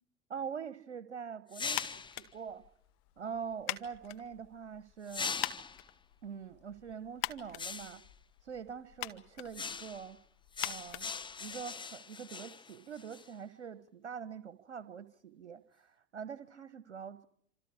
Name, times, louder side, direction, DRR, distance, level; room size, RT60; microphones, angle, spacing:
voice 1, 0.3-1.9 2.2-2.6 3.2-5.4 6.2-8.0 8.4-10.2 10.6-11.1 11.4-17.3, right 7 dB, 75° right, 13 dB, 1.2 m, -44 dB
sound 1, 1.5-2.2 5.1-5.9 7.6-8.1 9.5-10.1 10.5-13.3, left 5 dB, 15° left, 1.0 m, -41 dB
sound 2, 1.7-11.9, left 18 dB, 50° left, 2.0 m, -44 dB
27.5 x 27.0 x 4.8 m, 0.68 s
figure-of-eight pair, 75°, 34 cm